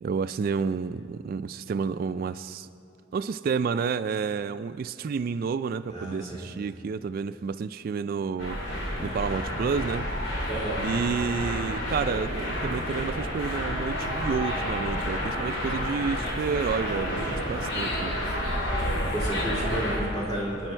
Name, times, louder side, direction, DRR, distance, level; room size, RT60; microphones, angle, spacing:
voice 1, 0.0-2.7 3.1-10.1 10.8-18.2, right 5 dB, 50° right, 12 dB, 0.3 m, -30 dB
voice 2, 5.9-6.5 10.5-10.9 18.8-20.7, right 1 dB, 25° left, -5 dB, 3.8 m, -32 dB
sound 1, 8.4-20.0, equal, 90° left, 4.4 m, -30 dB
25.5 x 10.0 x 4.4 m, 2.5 s
head